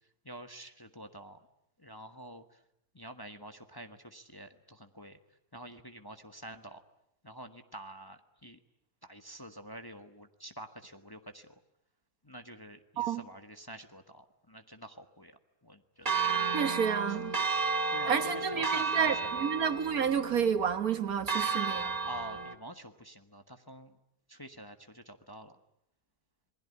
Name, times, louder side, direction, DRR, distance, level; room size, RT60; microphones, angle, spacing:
voice 1, 0.2-1.4 1.8-2.4 2.9-5.2 5.5-6.8 7.2-8.6 9.0-11.5 12.2-16.8 17.9-19.5 22.0-24.0 24.3-25.5, right 1 dB, 15° left, 7 dB, 1.3 m, -48 dB
Church bell, 16.0-22.5, right 5 dB, 25° right, 1.7 m, -33 dB
voice 2, 16.5-17.4 18.1-21.9, right 7 dB, 65° right, 10 dB, 1.8 m, -30 dB
27.5 x 20.5 x 9.8 m, 0.76 s
omnidirectional pair, 1.7 m